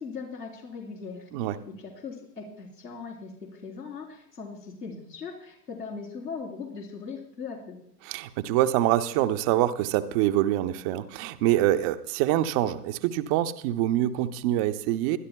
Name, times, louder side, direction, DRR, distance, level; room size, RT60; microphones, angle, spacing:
voice 1, 0.0-1.3 1.8-7.8, left 5 dB, 90° left, -3 dB, 3.7 m, -39 dB
voice 2, 8.0-15.2, right 13 dB, 25° right, 9 dB, 0.4 m, -25 dB
23.0 x 11.0 x 2.2 m, 0.76 s
hypercardioid pair, 110°, 48 cm